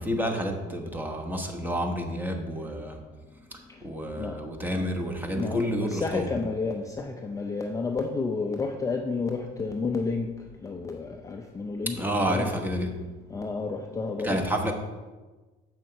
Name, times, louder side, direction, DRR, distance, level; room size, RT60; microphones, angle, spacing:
voice 1, 0.0-3.0 3.5-6.3 11.9-13.0 14.2-14.7, equal, 10° right, 3 dB, 1.2 m, -29 dB
voice 2, 5.3-10.3 10.6-12.5 13.3-14.4, left 4 dB, 15° left, 3 dB, 0.6 m, -31 dB
7.6 x 6.1 x 4.5 m, 1.3 s
supercardioid pair, 105°, 20 cm